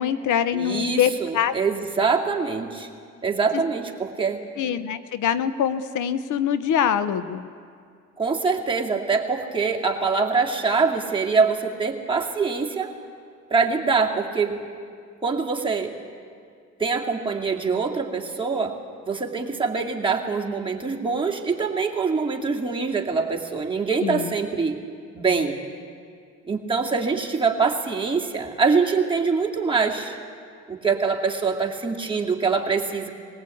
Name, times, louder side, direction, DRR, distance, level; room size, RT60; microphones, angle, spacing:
voice 1, 0.0-1.5 3.5-3.6 4.6-7.5 24.0-24.3, left 8 dB, 80° left, 12 dB, 0.9 m, -24 dB
voice 2, 0.5-2.9 3.2-4.4 8.2-12.9 13.5-14.6 15.2-15.9 16.8-18.8 19.1-24.8 25.1-25.6 26.4-30.2 30.7-33.1, right 4 dB, 15° right, -2 dB, 2.4 m, -24 dB
21.5 x 17.0 x 8.5 m, 2.3 s
cardioid pair, 90°, 30 cm